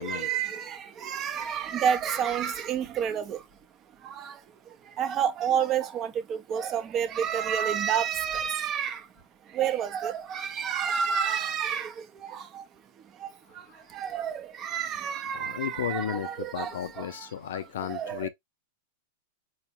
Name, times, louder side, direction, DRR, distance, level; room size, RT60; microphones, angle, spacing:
voice 1, 0.0-3.5 3.8-17.3 17.8-18.3, right 8 dB, 30° right, 0.5 m, -30 dB
voice 2, 15.3-18.3, left 10 dB, 80° left, 0.4 m, -34 dB
4.5 x 2.1 x 2.9 m
supercardioid pair, 145°, 0 cm